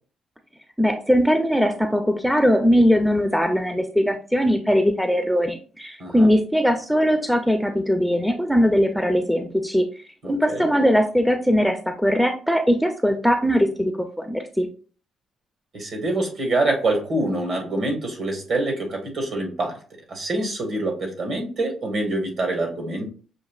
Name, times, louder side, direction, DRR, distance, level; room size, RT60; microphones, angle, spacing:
voice 1, 0.8-9.9 10.2-14.7, equal, ahead, 5 dB, 0.5 m, -20 dB
voice 2, 10.2-10.7 15.7-19.8 20.1-23.1, right 2 dB, 60° right, 3 dB, 1.7 m, -25 dB
6.4 x 2.6 x 2.4 m, 0.38 s
cardioid pair, 90°, 0 cm